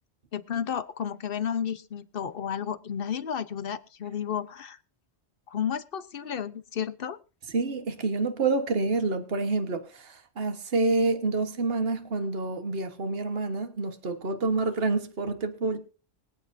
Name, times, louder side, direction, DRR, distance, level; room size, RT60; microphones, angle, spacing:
voice 1, 0.3-4.8 5.5-7.2, left 8 dB, 55° left, 1.0 m, -32 dB
voice 2, 7.5-15.8, right 3 dB, 60° right, 1.6 m, -28 dB
24.5 x 8.3 x 2.7 m
omnidirectional pair, 1.1 m